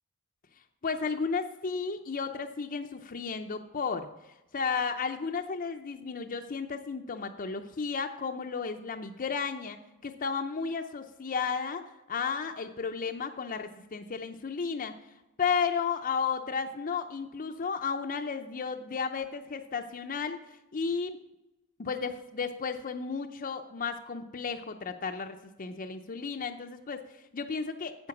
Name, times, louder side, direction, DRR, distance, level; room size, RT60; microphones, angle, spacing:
voice 1, 0.8-4.1 4.5-14.9 15.4-20.4 20.7-21.2 21.8-28.1, left 5 dB, 40° left, 5 dB, 0.6 m, -33 dB
9.7 x 7.8 x 5.9 m, 0.96 s
head